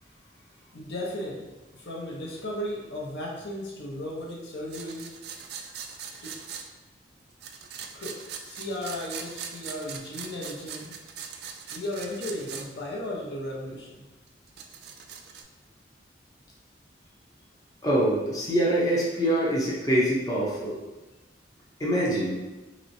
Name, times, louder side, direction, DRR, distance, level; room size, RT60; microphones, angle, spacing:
voice 1, 0.7-5.1 5.7-5.8 6.2-6.3 7.9-11.0 11.7-14.1, left 1 dB, 65° left, -3 dB, 0.7 m, -35 dB
sound 1, 4.7-6.7 7.4-12.7 13.0-13.1 14.3-15.4, right 7 dB, 60° right, 0.3 m, -41 dB
voice 2, 17.8-20.8 21.8-22.4, right 1 dB, 20° left, -6 dB, 0.6 m, -24 dB
3.0 x 3.0 x 2.6 m, 1.1 s
head